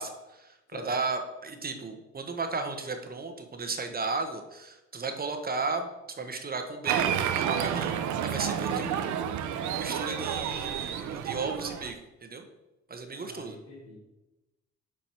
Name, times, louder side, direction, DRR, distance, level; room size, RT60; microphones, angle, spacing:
voice 1, 0.0-7.9 8.2-9.1 9.4-12.4 12.9-13.6, right 4 dB, 30° right, 6 dB, 1.3 m, -35 dB
Applause, 6.9-11.9, right 9 dB, 80° right, 0.8 m, -30 dB
voice 2, 8.6-9.0 13.1-14.0, left 3 dB, 90° left, -3 dB, 3.3 m, -45 dB
9.3 x 5.2 x 4.5 m, 1.0 s
cardioid pair, 90°, 29 cm